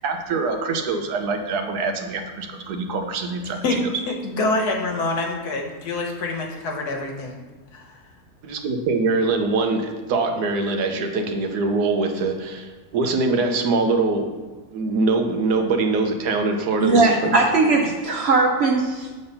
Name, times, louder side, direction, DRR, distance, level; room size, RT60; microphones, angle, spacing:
voice 1, 0.0-3.6 8.4-14.3 14.7-17.3, right 3 dB, 90° right, 5 dB, 1.3 m, -23 dB
voice 2, 4.1-7.4 7.7-8.0, left 2 dB, 80° left, 2 dB, 1.5 m, -26 dB
voice 3, 16.8-19.1, right 3 dB, 65° right, 2 dB, 0.6 m, -19 dB
7.1 x 3.9 x 5.4 m, 1.3 s
omnidirectional pair, 1.7 m